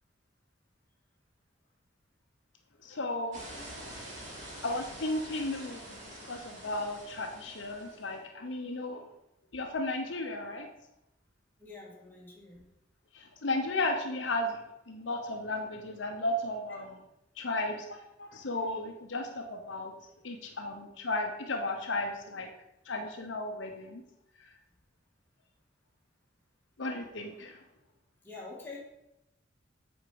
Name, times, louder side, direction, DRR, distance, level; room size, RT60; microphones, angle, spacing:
voice 1, 2.8-3.4 4.6-6.0 6.2-9.0 9.5-10.7 13.1-17.0 17.4-19.9 20.2-22.5 22.9-24.0 26.8-27.6, left 2 dB, 70° left, 4 dB, 0.9 m, -34 dB
sound 1, 3.3-8.1, right 1 dB, 40° right, 2.7 m, -46 dB
voice 2, 3.5-4.1 11.6-12.7 18.3-18.4 28.2-28.8, left 3 dB, 10° left, -5 dB, 2.5 m, -47 dB
7.9 x 4.4 x 6.9 m, 0.87 s
head